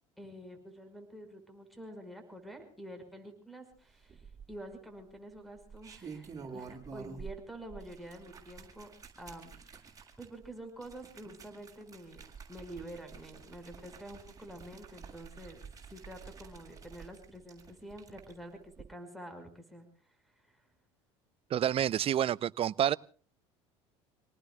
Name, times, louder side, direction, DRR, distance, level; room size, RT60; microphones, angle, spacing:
voice 1, 0.2-8.9 9.2-9.6 10.2-15.6 15.9-19.8 20.2-20.7, right 1 dB, ahead, 5.6 m, -48 dB
sound 1, 4.1-4.7 5.6-7.4 7.7-18.3 18.7-18.8, right 5 dB, 25° right, 7.5 m, -49 dB
voice 2, 21.5-23.0, right 10 dB, 40° right, 0.7 m, -28 dB
29.0 x 19.0 x 2.4 m
hypercardioid pair, 80°, 15 cm